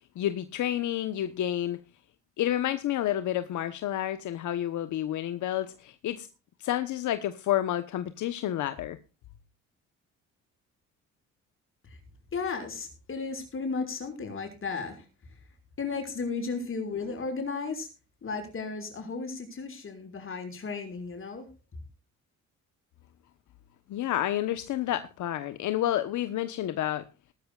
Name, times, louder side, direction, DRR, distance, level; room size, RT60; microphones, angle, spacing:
voice 1, 0.2-1.8 2.4-6.3 6.6-9.0 23.9-27.0, left 12 dB, 75° left, 1.1 m, -30 dB
voice 2, 12.3-15.0 15.8-17.9 18.2-21.5, left 4 dB, 45° left, 5.8 m, -34 dB
19.0 x 13.0 x 2.4 m
cardioid pair, 90°, 30 cm